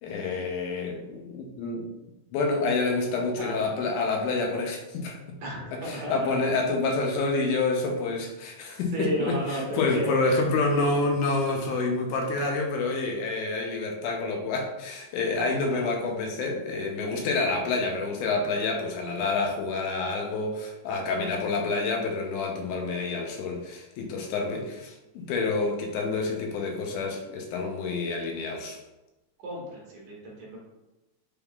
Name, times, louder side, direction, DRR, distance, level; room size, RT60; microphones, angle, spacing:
voice 1, 0.0-1.9 2.3-5.2 5.7-28.8, left 3 dB, 80° left, 2 dB, 2.0 m, -28 dB
voice 2, 5.4-6.5 8.9-11.1 15.7-15.8 19.0-19.3 29.4-30.6, equal, 70° right, -3 dB, 2.3 m, -34 dB
5.4 x 3.5 x 2.2 m, 1.0 s
omnidirectional pair, 3.7 m